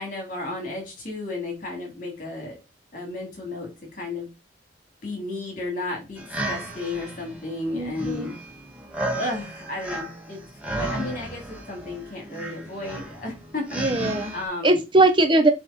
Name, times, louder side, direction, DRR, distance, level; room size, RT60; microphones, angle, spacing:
voice 1, 0.0-2.6 2.9-4.3 5.0-8.3 9.1-10.4 10.7-13.8 14.3-14.8, left 2 dB, 45° left, 0 dB, 3.9 m, -33 dB
sound 1, 6.2-14.4, right 1 dB, 10° right, 1.7 m, -34 dB
voice 2, 7.7-8.3 13.7-14.3 14.6-15.5, right 2 dB, 25° right, 7 dB, 0.8 m, -20 dB
7.5 x 3.7 x 4.6 m, 0.26 s
head